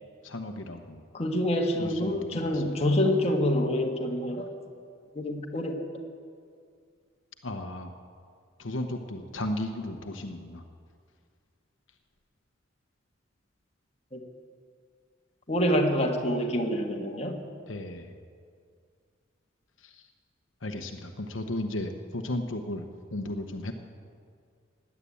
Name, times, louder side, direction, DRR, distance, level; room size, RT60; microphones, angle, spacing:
voice 1, 0.2-1.0 1.8-2.7 7.4-7.9 8.6-10.6 17.7-18.1 20.6-23.7, left 1 dB, 75° left, 5 dB, 1.0 m, -35 dB
voice 2, 1.1-4.5 5.1-5.8 14.1-14.2 15.5-17.4, left 1 dB, 35° left, 1 dB, 1.6 m, -26 dB
16.5 x 9.9 x 8.4 m, 2.2 s
head